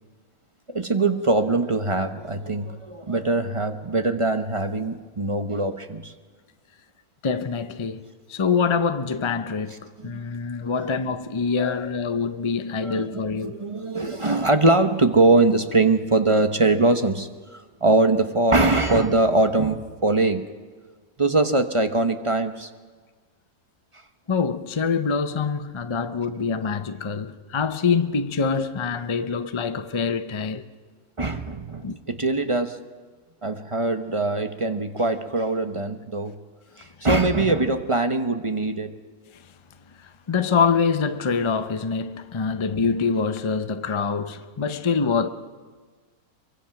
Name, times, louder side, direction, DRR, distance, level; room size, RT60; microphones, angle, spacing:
voice 1, 0.7-6.1 10.0-10.3 10.6-10.9 11.6-11.9 12.8-13.1 13.4-20.4 21.2-22.7 31.2-32.8 33.4-36.4 36.8-38.9, right 2 dB, 25° right, 0.8 m, -22 dB
voice 2, 7.2-13.6 24.3-30.7 31.8-32.0 39.3-39.4 40.0-45.3, left 5 dB, 40° left, 0.4 m, -25 dB
24.0 x 23.5 x 5.9 m
omnidirectional pair, 1.6 m